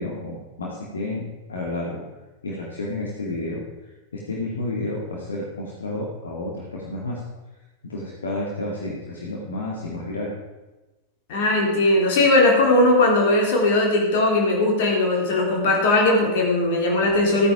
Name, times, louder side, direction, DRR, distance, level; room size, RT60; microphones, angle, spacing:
voice 1, 0.0-2.0 2.4-3.6 4.1-7.2 7.8-10.3, left 2 dB, 70° left, -4 dB, 2.3 m, -30 dB
voice 2, 11.3-17.5, left 2 dB, 50° left, -1 dB, 3.8 m, -19 dB
14.5 x 9.3 x 5.0 m, 1.1 s
figure-of-eight pair, 90°, 0 cm